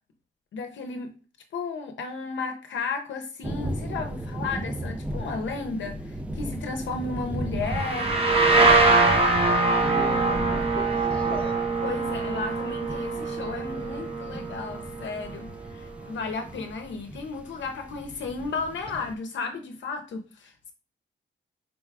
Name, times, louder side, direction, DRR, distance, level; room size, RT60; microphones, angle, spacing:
voice 1, 0.5-1.1 1.5-8.2 11.8-20.7, left 4 dB, 65° left, 5 dB, 0.6 m, -34 dB
sound 1, 3.4-19.1, right 1 dB, 5° right, 0.3 m, -36 dB
sound 2, 7.7-15.2, right 3 dB, 25° right, 0.8 m, -23 dB
voice 2, 9.8-11.6, left 2 dB, 25° left, 4 dB, 0.8 m, -36 dB
4.1 x 2.3 x 4.6 m, 0.37 s
wide cardioid pair, 155°, 21 cm